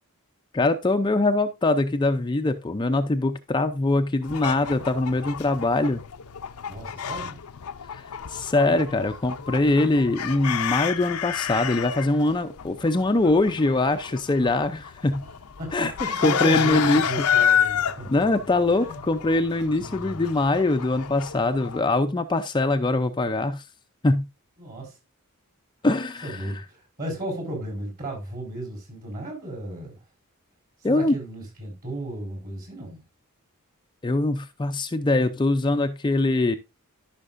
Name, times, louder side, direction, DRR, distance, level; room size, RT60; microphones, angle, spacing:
voice 1, 0.5-6.0 8.3-15.2 15.7-15.9 16.2-17.1 17.5-17.7 18.1-23.6 24.0-24.2 25.8-26.5 30.8-31.1 34.0-36.6, left 2 dB, 20° left, 0.5 m, -23 dB
sound 1, 4.2-21.8, left 8 dB, 75° left, 0.6 m, -30 dB
voice 2, 6.7-7.4 8.8-9.0 15.6-18.3 18.8-19.0 19.6-20.2 24.6-25.0 26.2-30.0 30.8-33.0, right 1 dB, 40° right, 4.8 m, -34 dB
13.5 x 5.8 x 2.5 m
head